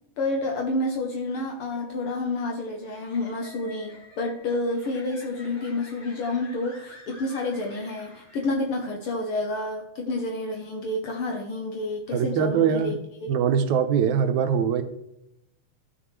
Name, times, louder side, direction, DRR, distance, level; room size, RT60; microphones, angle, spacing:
voice 1, 0.2-13.3, left 2 dB, 65° left, 2 dB, 1.4 m, -29 dB
sound 1, 1.5-8.9, left 1 dB, 40° left, 2.9 m, -50 dB
voice 2, 12.1-13.0 13.3-14.8, right 7 dB, 85° right, 8 dB, 2.1 m, -22 dB
13.5 x 6.3 x 3.2 m, 0.82 s
omnidirectional pair, 3.3 m